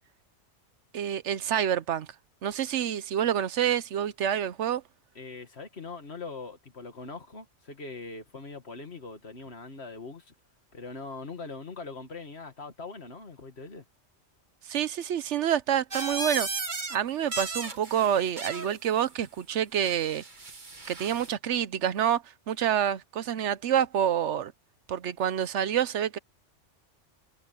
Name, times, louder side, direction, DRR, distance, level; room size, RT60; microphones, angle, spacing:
voice 1, 0.9-2.1 2.4-4.8 14.6-16.5 16.9-20.2 20.9-24.5 24.9-26.2, right 9 dB, 75° right, 1.0 m, -27 dB
voice 2, 5.2-10.3 10.7-13.8, left 4 dB, 60° left, 2.3 m, -41 dB
sound 1, 15.9-17.0 17.2-18.7 19.8-21.3, right 3 dB, 40° right, 1.9 m, -35 dB
omnidirectional pair, 1.2 m